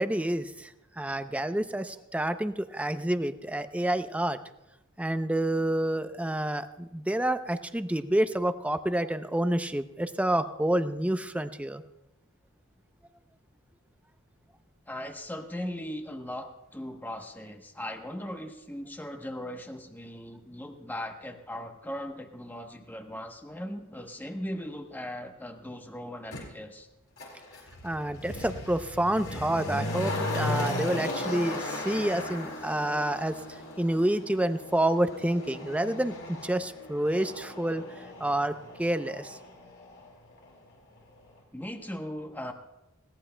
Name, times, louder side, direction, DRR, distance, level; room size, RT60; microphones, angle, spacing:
voice 1, 0.0-4.4 5.0-11.8 27.8-33.4 33.8-39.4, right 1 dB, 5° right, 9 dB, 0.5 m, -28 dB
voice 2, 14.9-26.9 41.5-42.5, left 1 dB, 10° left, 4 dB, 1.0 m, -39 dB
Motor vehicle (road), 26.3-26.4 27.2-40.1 40.4-40.5, left 1 dB, 80° left, 4.9 m, -36 dB
21.0 x 17.0 x 2.2 m, 0.94 s
head